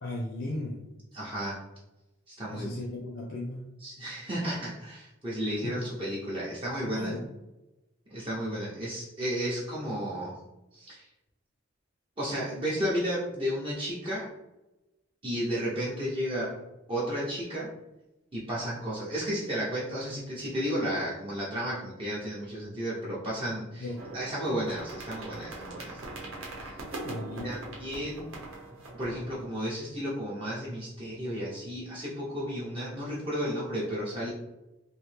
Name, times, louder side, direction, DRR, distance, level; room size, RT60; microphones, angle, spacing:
voice 1, 0.0-0.8 2.5-3.7 5.6-5.9 6.9-7.2 23.8-24.2 27.0-27.6, left 1 dB, 65° left, -2 dB, 0.7 m, -36 dB
voice 2, 1.1-1.6 2.3-2.7 3.8-7.1 8.1-10.4 10.7-11.1 12.2-14.3 15.2-17.7 18.3-26.1 26.6-26.8 27.4-28.3 28.9-34.3, equal, 25° right, -8 dB, 0.7 m, -33 dB
sound 1, 24.0-29.5, right 2 dB, 80° right, 0.8 m, -42 dB
3.1 x 2.7 x 3.2 m, 1.0 s
head